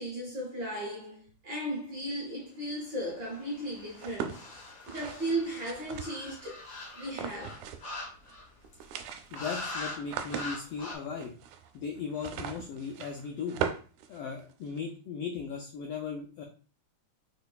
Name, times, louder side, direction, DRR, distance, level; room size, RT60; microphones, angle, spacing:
voice 1, 0.0-4.4 4.9-6.6 6.9-7.6, right 1 dB, 55° right, 1.4 m, -36 dB
sound 1, 3.0-8.6 9.3-10.0 10.3-11.0, left 2 dB, 55° left, 0.9 m, -42 dB
sound 2, 4.0-6.5 7.1-8.0 8.2-8.3 8.6-14.8, right 8 dB, 90° right, 2.0 m, -39 dB
voice 2, 9.3-11.3 11.7-13.6 14.1-16.4, left 6 dB, 80° left, 1.4 m, -37 dB
5.1 x 3.8 x 2.3 m
omnidirectional pair, 3.4 m